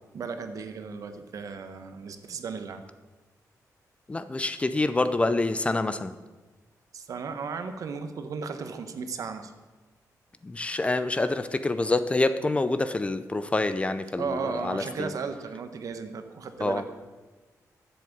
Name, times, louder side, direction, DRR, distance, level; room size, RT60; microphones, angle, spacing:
voice 1, 0.1-2.8 6.9-9.5 14.2-16.9, right 5 dB, 60° right, 8 dB, 1.1 m, -35 dB
voice 2, 4.1-6.1 10.4-15.1 16.6-16.8, left 2 dB, 20° left, 12 dB, 0.5 m, -27 dB
11.5 x 7.6 x 7.2 m, 1.2 s
wide cardioid pair, 155°, 6 cm